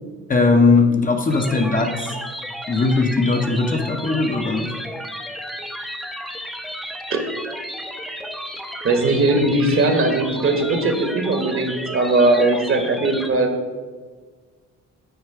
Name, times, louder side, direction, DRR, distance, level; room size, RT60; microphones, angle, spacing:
voice 1, 0.3-2.1 2.7-4.7, left 3 dB, 30° left, 4 dB, 0.8 m, -19 dB
sound 1, 1.3-13.3, equal, ahead, 0.7 m, -33 dB
voice 2, 8.8-13.5, right 2 dB, 45° right, 5 dB, 1.2 m, -19 dB
8.1 x 4.6 x 4.7 m, 1.5 s
cardioid pair, 90°, 30 cm